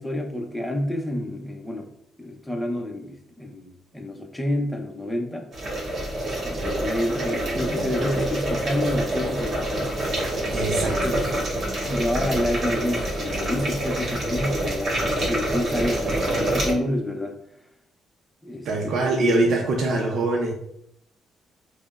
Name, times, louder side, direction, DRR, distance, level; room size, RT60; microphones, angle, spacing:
voice 1, 0.0-1.9 2.2-5.5 6.4-9.9 10.9-11.2 11.8-17.4 18.4-19.1, left 1 dB, 5° left, 3 dB, 0.6 m, -29 dB
sound 1, 5.5-16.7, right 1 dB, 45° right, 1.3 m, -26 dB
voice 2, 10.5-11.0 18.6-20.5, right 2 dB, 65° right, -1 dB, 0.5 m, -23 dB
4.9 x 2.1 x 2.4 m, 0.72 s
cardioid pair, 90°, 0 cm